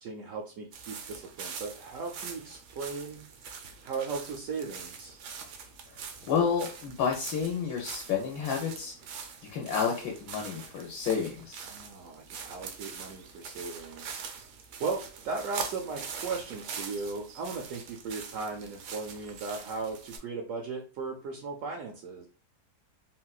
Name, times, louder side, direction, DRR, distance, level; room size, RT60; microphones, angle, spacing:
voice 1, 0.0-3.2 3.8-5.2 11.6-14.2 14.8-22.3, right 4 dB, 70° right, 1 dB, 0.8 m, -37 dB
sound 1, 0.7-20.2, right 6 dB, 85° right, 1.2 m, -43 dB
voice 2, 5.9-8.9 9.5-11.7, left 6 dB, 70° left, 0 dB, 1.0 m, -30 dB
3.8 x 2.1 x 2.3 m, 0.37 s
omnidirectional pair, 1.7 m